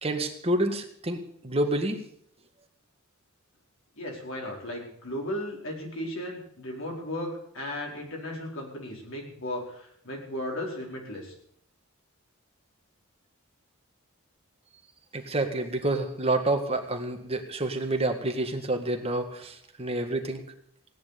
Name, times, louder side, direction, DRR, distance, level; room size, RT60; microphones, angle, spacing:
voice 1, 0.0-2.0 15.1-20.4, right 1 dB, 30° right, 4 dB, 1.8 m, -28 dB
voice 2, 4.0-11.3, left 1 dB, 70° left, -1 dB, 4.8 m, -35 dB
17.0 x 10.5 x 6.8 m, 0.68 s
head